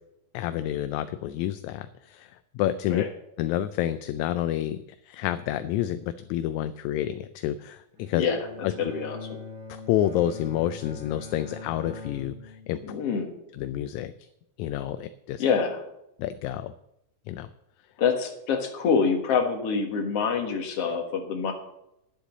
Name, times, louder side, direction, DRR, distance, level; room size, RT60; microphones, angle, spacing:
voice 1, 0.3-2.3 2.6-3.0 3.4-8.2 8.6-8.7 9.9-12.8 13.6-14.1 14.6-15.4 16.2-16.7 17.3-17.5, left 12 dB, 80° left, 11 dB, 1.8 m, -29 dB
Bowed string instrument, 7.9-13.2, left 4 dB, 30° right, 4.3 m, -42 dB
voice 2, 8.8-9.4 12.8-13.3 15.4-15.8 18.0-21.5, left 6 dB, 55° left, 3 dB, 2.3 m, -26 dB
10.0 x 8.2 x 7.3 m, 0.82 s
omnidirectional pair, 3.6 m